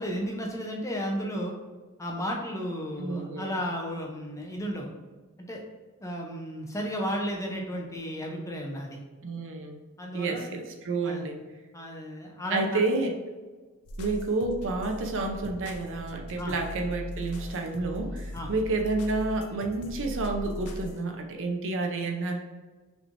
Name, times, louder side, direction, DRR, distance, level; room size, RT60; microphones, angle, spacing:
voice 1, 0.0-1.5 2.0-4.9 5.4-5.6 6.0-9.0 10.0-10.5 11.0-11.2 11.7-12.8 16.4-16.5 18.3-18.5, equal, 15° left, 0 dB, 0.7 m, -33 dB
voice 2, 3.0-3.5 9.2-9.8 10.1-11.4 12.5-13.1 14.0-22.4, right 3 dB, 60° right, 3 dB, 0.7 m, -30 dB
sound 1, 13.9-21.0, equal, 80° left, 0.6 m, -39 dB
6.1 x 3.3 x 2.6 m, 1.3 s
head